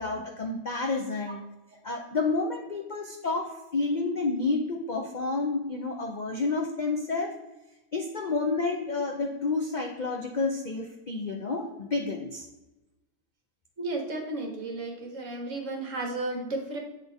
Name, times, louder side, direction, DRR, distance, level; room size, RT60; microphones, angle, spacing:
voice 1, 0.0-1.4 1.8-7.3 7.9-12.5, left 3 dB, 70° left, 2 dB, 0.4 m, -30 dB
voice 2, 13.8-16.8, right 2 dB, 50° right, 2 dB, 1.5 m, -33 dB
8.2 x 4.0 x 3.6 m, 0.99 s
omnidirectional pair, 1.7 m